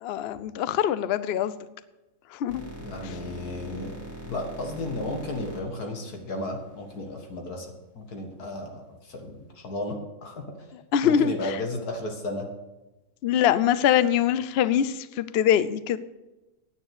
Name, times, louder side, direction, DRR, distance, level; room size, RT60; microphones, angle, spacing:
voice 1, 0.0-1.5 2.3-2.6 10.9-11.3 13.2-16.0, left 9 dB, 60° left, 15 dB, 0.7 m, -23 dB
sound 1, 2.5-7.0, right 1 dB, 10° right, 2.2 m, -42 dB
voice 2, 2.8-4.0 4.3-10.4 11.0-12.5, left 2 dB, 85° left, 3 dB, 2.2 m, -34 dB
9.5 x 9.4 x 6.6 m, 1.1 s
omnidirectional pair, 1.6 m